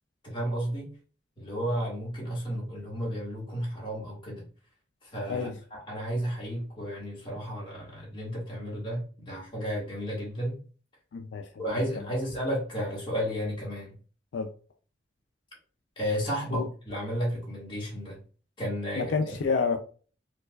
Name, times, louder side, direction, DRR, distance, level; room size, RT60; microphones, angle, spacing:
voice 1, 0.2-0.9 1.4-4.5 5.0-10.6 11.6-13.9 16.0-18.2 18.6-19.1, equal, 25° left, 1.5 m, -33 dB
voice 2, 11.1-11.6 14.3-14.5 16.5-16.7 19.0-19.8, left 5 dB, 75° left, 0.4 m, -29 dB
4.6 x 2.3 x 2.3 m
head